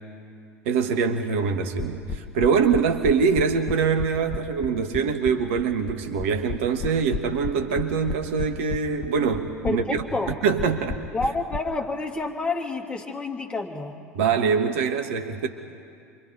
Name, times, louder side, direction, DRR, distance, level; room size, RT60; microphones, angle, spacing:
voice 1, 0.6-10.0 10.4-11.0 14.1-15.5, right 6 dB, 60° right, 6 dB, 1.5 m, -24 dB
sound 1, 1.8-11.6, left 5 dB, 50° left, 1.2 m, -32 dB
voice 2, 9.6-10.4 11.1-13.9, left 3 dB, 15° left, 0 dB, 2.8 m, -29 dB
28.0 x 24.5 x 4.8 m, 2.4 s
figure-of-eight pair, 70°, 8 cm